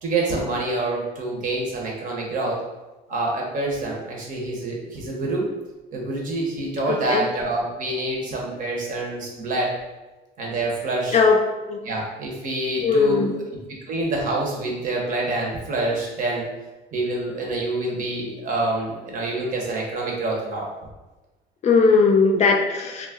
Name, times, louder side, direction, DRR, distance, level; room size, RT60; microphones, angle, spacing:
voice 1, 0.0-2.6 3.1-5.5 5.9-9.7 10.4-11.2 11.8-13.3 13.9-16.5 16.9-20.7, right 2 dB, 50° right, -1 dB, 0.8 m, -26 dB
voice 2, 6.9-7.3 11.1-11.4 11.7-11.8 12.8-13.4 21.6-23.1, left 4 dB, 40° left, 2 dB, 0.4 m, -18 dB
2.3 x 2.0 x 3.5 m, 1.1 s
cardioid pair, 110°, 17 cm